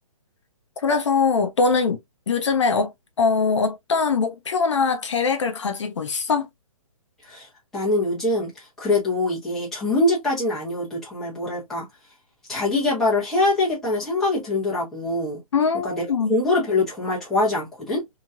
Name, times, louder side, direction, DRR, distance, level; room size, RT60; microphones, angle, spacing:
voice 1, 0.8-2.0 2.3-2.9 3.2-6.5 15.5-16.3, left 5 dB, 55° left, 0.5 m, -22 dB
voice 2, 7.2-11.9 12.5-15.4 15.8-18.0, left 2 dB, ahead, 0.9 m, -24 dB
2.9 x 2.8 x 2.3 m
hypercardioid pair, 170°, 19 cm